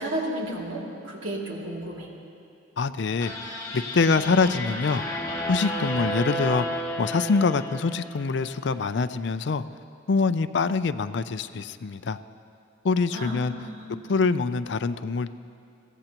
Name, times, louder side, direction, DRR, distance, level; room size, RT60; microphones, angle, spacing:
voice 1, 0.0-2.1 13.1-14.2, right 1 dB, 90° right, -3 dB, 2.6 m, -33 dB
voice 2, 2.8-5.0 5.5-9.6 10.1-12.2 12.8-13.5 14.1-15.3, left 4 dB, 60° left, 13 dB, 0.4 m, -25 dB
sound 1, 3.2-8.5, equal, 20° left, 1.8 m, -32 dB
23.0 x 16.5 x 2.9 m, 2.6 s
head